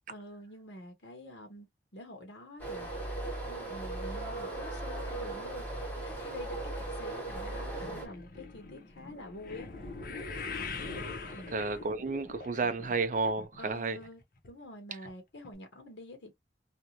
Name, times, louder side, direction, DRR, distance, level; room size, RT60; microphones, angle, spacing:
voice 1, 0.1-1.7 1.9-2.9 3.4-9.7 11.3-11.5 13.6-14.2 14.5-16.3, left 1 dB, 75° left, 0.9 m, -47 dB
sound 1, 2.6-8.1, right 2 dB, 10° left, 0.9 m, -38 dB
sound 2, 7.4-13.7 14.0-14.5 15.1-15.2 15.4-15.5, left 3 dB, 50° left, 0.7 m, -42 dB
voice 2, 11.5-14.0, right 3 dB, 45° right, 0.5 m, -31 dB
2.6 x 2.2 x 2.8 m
head